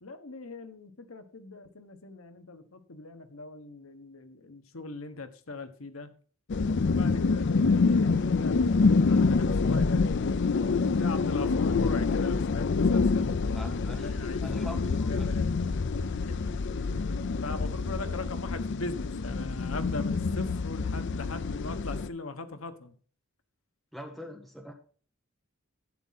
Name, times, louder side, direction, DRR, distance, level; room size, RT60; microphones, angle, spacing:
voice 1, 0.0-6.1 6.8-10.2 10.9-13.7 14.0-14.6 14.9-15.6 16.3-16.4 16.9-17.0 17.4-22.9, left 3 dB, 80° left, 9 dB, 1.2 m, -40 dB
sound 1, 6.5-22.1, left 4 dB, 60° left, 0.5 m, -26 dB
voice 2, 13.5-15.3 23.9-24.7, left 1 dB, ahead, 3 dB, 1.1 m, -42 dB
12.0 x 8.5 x 4.1 m, 0.43 s
head